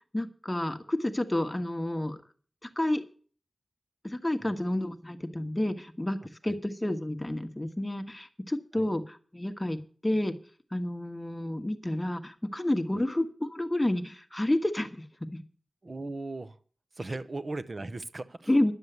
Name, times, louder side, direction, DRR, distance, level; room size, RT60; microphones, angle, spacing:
voice 1, 0.1-2.2 2.6-3.0 4.0-6.2 6.4-10.3 10.7-15.0 15.3-15.4 18.5-18.7, left 1 dB, 15° left, 8 dB, 1.3 m, -30 dB
voice 2, 15.8-16.6 17.0-18.5, right 2 dB, 45° right, 14 dB, 0.9 m, -37 dB
11.5 x 7.3 x 8.0 m, 0.42 s
wide cardioid pair, 75°, 0 cm